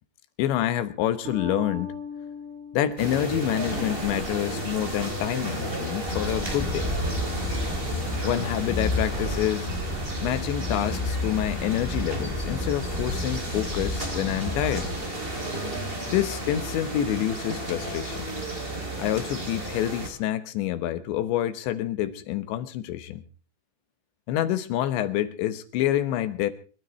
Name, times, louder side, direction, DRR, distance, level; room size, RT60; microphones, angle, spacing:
voice 1, 0.4-2.0 2.7-7.0 8.2-9.7 10.2-14.9 16.1-18.2 19.0-23.2 24.3-26.5, left 12 dB, 75° left, 3.2 m, -27 dB
Bass guitar, 1.3-4.3, left 3 dB, 90° right, 8.0 m, -39 dB
sound 1, 3.0-20.1, right 1 dB, 15° right, 2.6 m, -33 dB
sound 2, 6.1-14.9, left 2 dB, 15° left, 1.3 m, -32 dB
26.0 x 12.5 x 3.2 m
omnidirectional pair, 5.4 m